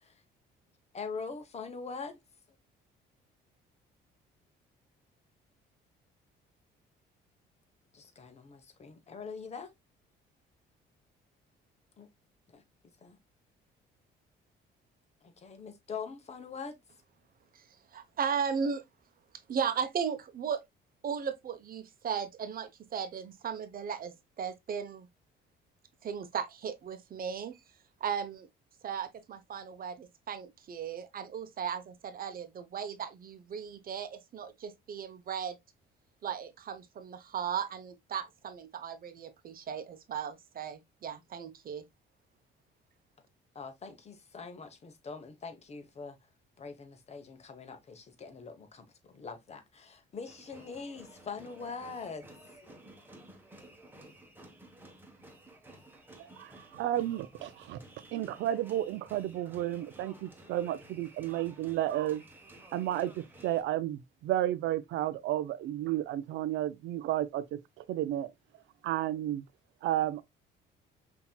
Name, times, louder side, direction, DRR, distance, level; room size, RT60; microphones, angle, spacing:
voice 1, 0.9-2.2 7.9-9.7 12.0-12.1 12.5-12.6 13.0-13.2 15.2-16.8 43.5-46.2 46.6-52.3, left 5 dB, 35° left, 1.0 m, -43 dB
voice 2, 17.9-18.8 19.5-20.6 21.0-25.1 26.0-27.6 28.0-28.5 28.8-35.6 36.2-41.8, right 7 dB, 50° right, 0.8 m, -36 dB
sound 1, 50.2-63.6, right 1 dB, 10° right, 1.1 m, -54 dB
voice 3, 56.2-57.8 58.1-62.2 62.7-68.3 68.8-69.4 69.8-70.2, right 13 dB, 75° right, 0.5 m, -32 dB
5.7 x 2.9 x 2.2 m
cardioid pair, 100°, 19 cm